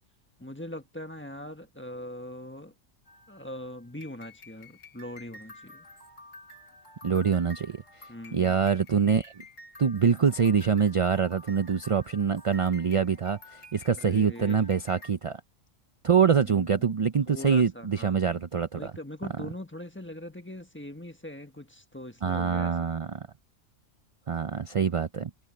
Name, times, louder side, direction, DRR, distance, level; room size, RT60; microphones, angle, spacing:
voice 1, 0.4-2.7 3.3-5.9 8.1-8.6 14.0-14.7 16.4-17.0 17.3-18.4 18.7-22.8, left 1 dB, 10° left, 1.4 m, -41 dB
sound 1, 3.1-15.1, left 2 dB, 85° left, 4.1 m, -51 dB
voice 2, 7.0-9.3 9.8-15.4 16.0-18.9 22.2-23.3 24.3-25.3, right 6 dB, 50° right, 0.4 m, -25 dB
omnidirectional pair, 1.3 m